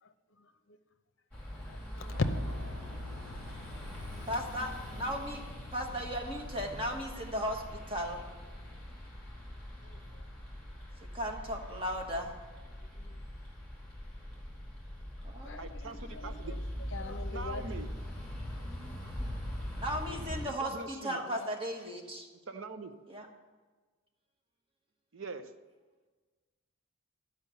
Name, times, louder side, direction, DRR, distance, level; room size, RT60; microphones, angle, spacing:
voice 1, 0.4-0.8 1.6-2.2 9.8-10.2 12.8-13.2 15.4-16.6 16.9-17.9 21.3-21.5, left 3 dB, 55° left, 8 dB, 0.7 m, -47 dB
sound 1, 1.3-20.5, left 1 dB, 5° left, 2.1 m, -42 dB
Piano, 2.1-10.1, left 3 dB, 40° right, 3.6 m, -51 dB
voice 2, 4.3-5.4 5.7-8.2 11.1-12.3 15.2-15.7 19.8-22.3 23.1-23.3, equal, 25° right, 1 dB, 1.2 m, -36 dB
voice 3, 15.6-16.5 17.3-17.9 20.6-21.3 22.5-23.0 25.1-25.5, right 3 dB, 60° right, 9 dB, 0.7 m, -42 dB
11.5 x 5.2 x 6.8 m, 1.4 s
head